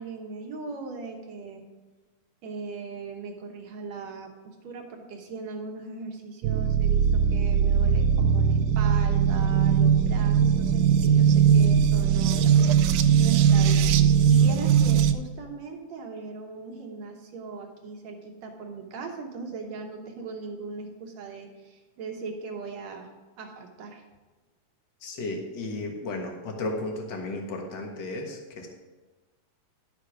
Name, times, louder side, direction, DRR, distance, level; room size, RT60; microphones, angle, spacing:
voice 1, 0.0-1.6 2.4-23.1 23.4-24.0, right 4 dB, 65° right, 2 dB, 1.8 m, -39 dB
sound 1, 6.4-15.1, right 7 dB, 80° right, 2.3 m, -20 dB
voice 2, 25.0-28.7, left 2 dB, 75° left, 1 dB, 1.0 m, -34 dB
11.5 x 7.5 x 4.9 m, 1.3 s
omnidirectional pair, 4.2 m